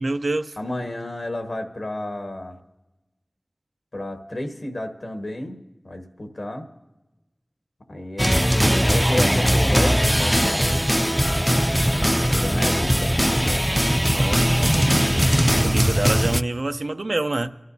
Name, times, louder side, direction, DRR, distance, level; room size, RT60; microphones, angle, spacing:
voice 1, 0.0-0.6 14.1-15.1 15.6-17.5, right 2 dB, 85° right, 0.5 m, -27 dB
voice 2, 0.6-2.6 3.9-5.6 5.8-6.7 7.9-10.9 12.3-13.6, left 1 dB, 80° left, 1.3 m, -31 dB
sound 1, 8.2-16.4, equal, 5° right, 0.3 m, -20 dB
24.5 x 13.0 x 2.7 m
wide cardioid pair, 40°, 0 cm